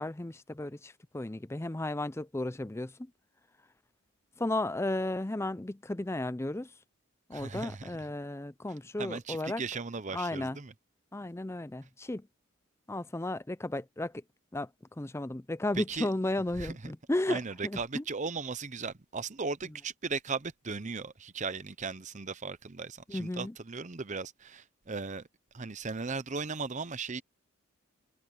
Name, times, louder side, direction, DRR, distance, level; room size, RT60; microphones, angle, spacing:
voice 1, 0.0-3.1 4.4-6.7 7.3-9.6 10.1-10.6 11.1-12.3 12.9-14.1 14.5-14.7 15.0-18.0 23.1-23.5, left 1 dB, 10° left, 0.5 m, -34 dB
voice 2, 7.3-7.9 9.0-10.7 15.7-16.1 16.6-16.9 17.3-25.2 25.5-27.2, right 4 dB, 35° right, 0.7 m, -37 dB
head